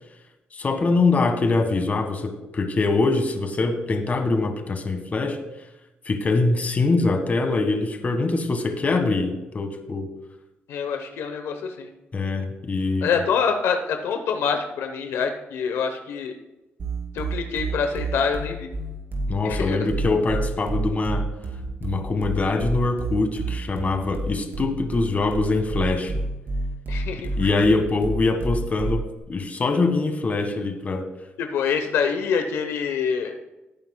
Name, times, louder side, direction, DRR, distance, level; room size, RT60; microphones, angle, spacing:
voice 1, 0.5-5.4 6.0-10.1 12.1-13.1 19.3-21.2 21.8-26.1 27.4-31.0, left 3 dB, 40° left, 6 dB, 1.5 m, -23 dB
voice 2, 10.7-11.9 13.0-16.3 17.1-18.7 19.4-19.8 26.9-27.5 31.4-33.3, left 6 dB, 90° left, 5 dB, 0.9 m, -26 dB
sound 1, 16.8-29.2, right 2 dB, 60° right, 2.9 m, -29 dB
17.0 x 8.8 x 2.2 m, 1.0 s
cardioid pair, 95°, 4 cm